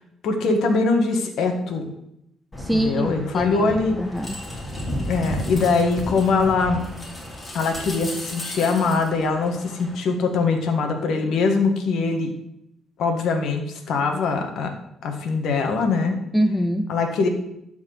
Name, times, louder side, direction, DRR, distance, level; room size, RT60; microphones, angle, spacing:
voice 1, 0.2-1.9 2.7-3.9 5.1-6.8 7.5-12.3 13.0-14.7 15.0-16.2 16.9-17.3, left 4 dB, 75° left, 4 dB, 1.8 m, -22 dB
sound 1, 2.5-9.9, equal, 25° left, 3.7 m, -33 dB
voice 2, 2.6-3.1 3.3-4.4 16.3-16.9, equal, 5° left, 8 dB, 0.6 m, -24 dB
12.0 x 4.8 x 7.8 m, 0.79 s
cardioid pair, 90°, 0 cm